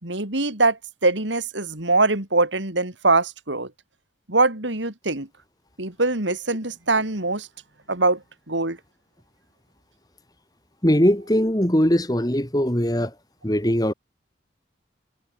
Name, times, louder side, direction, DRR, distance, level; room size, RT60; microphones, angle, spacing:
voice 1, 0.0-3.7 4.3-5.3 5.8-7.5 7.9-8.2 8.5-8.8, right 3 dB, 80° right, 4.0 m, -22 dB
voice 2, 10.8-13.1 13.4-13.9, equal, 20° left, 2.8 m, -20 dB
head